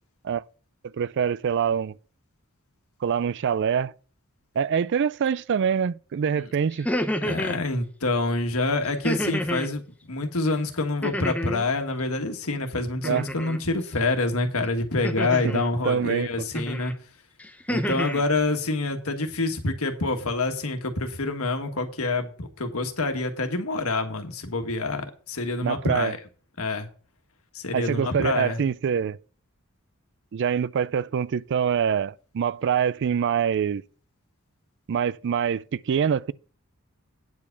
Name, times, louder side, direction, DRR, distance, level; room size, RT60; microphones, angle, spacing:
voice 1, 1.0-1.9 3.0-3.9 4.6-6.9 13.0-13.3 15.4-16.5 25.6-26.1 27.7-29.2 30.3-33.8 34.9-36.3, right 7 dB, 55° right, 0.4 m, -25 dB
sound 1, 6.7-7.6 9.0-9.7 11.0-11.7 13.0-13.6 15.0-15.7 16.5-16.9 17.4-18.2, equal, 5° left, 0.7 m, -29 dB
voice 2, 7.2-16.9 17.7-26.2 26.6-26.9 27.5-28.6, left 2 dB, 75° left, 1.6 m, -27 dB
9.4 x 4.9 x 6.6 m
head